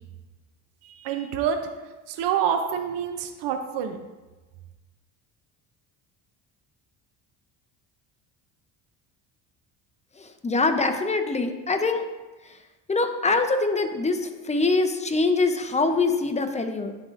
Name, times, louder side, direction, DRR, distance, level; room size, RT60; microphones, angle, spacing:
voice 1, 0.8-1.6 2.1-4.0, right 8 dB, 70° right, 6 dB, 0.7 m, -27 dB
voice 2, 10.2-12.0 12.9-16.9, left 3 dB, 15° left, 6 dB, 0.6 m, -24 dB
10.5 x 3.9 x 2.5 m, 1.2 s
supercardioid pair, 80°, 45 cm